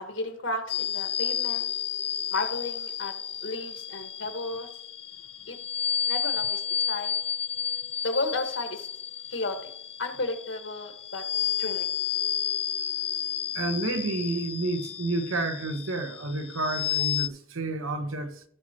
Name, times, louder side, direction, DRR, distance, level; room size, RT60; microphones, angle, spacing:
voice 1, 0.0-1.7 2.3-3.1 3.4-4.7 5.5-5.6 6.1-7.1 8.0-8.9 9.3-9.7 10.0-11.3 11.6-11.9, left 2 dB, 65° left, 1.6 m, -33 dB
sound 1, 0.7-17.3, left 9 dB, 30° left, 0.4 m, -32 dB
voice 2, 13.5-18.4, right 2 dB, 85° right, 1.1 m, -30 dB
16.5 x 6.2 x 3.0 m
head